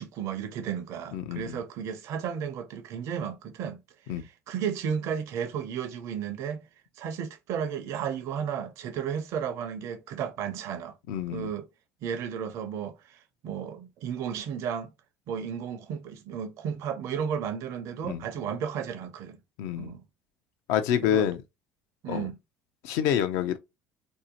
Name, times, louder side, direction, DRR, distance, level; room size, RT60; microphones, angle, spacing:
voice 1, 0.0-3.8 4.1-6.7 7.0-11.0 11.3-11.7 12.0-14.9 15.3-19.4 19.8-20.0 21.0-21.3 22.0-22.4, right 7 dB, 60° right, 0.5 m, -33 dB
voice 2, 1.1-1.6 4.1-4.3 11.1-11.5 18.0-18.2 19.6-20.0 20.7-21.4 22.1-22.3 22.8-23.6, left 10 dB, 70° left, 0.4 m, -27 dB
2.7 x 2.1 x 2.7 m
hypercardioid pair, 75°, 6 cm